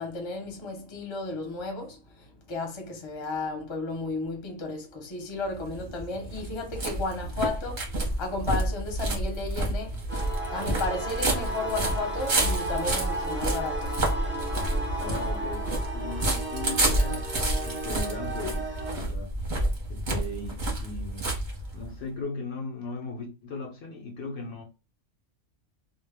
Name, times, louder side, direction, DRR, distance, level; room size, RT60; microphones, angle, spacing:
voice 1, 0.0-10.1 10.5-14.9, left 3 dB, 30° left, 0.6 m, -34 dB
sound 1, 5.5-22.0, right 1 dB, 45° right, 0.8 m, -29 dB
sound 2, 10.1-18.9, right 2 dB, 20° right, 0.3 m, -34 dB
voice 2, 15.0-19.4 19.9-21.4 21.7-24.6, left 3 dB, 65° left, 0.7 m, -38 dB
2.1 x 2.1 x 3.3 m
omnidirectional pair, 1.3 m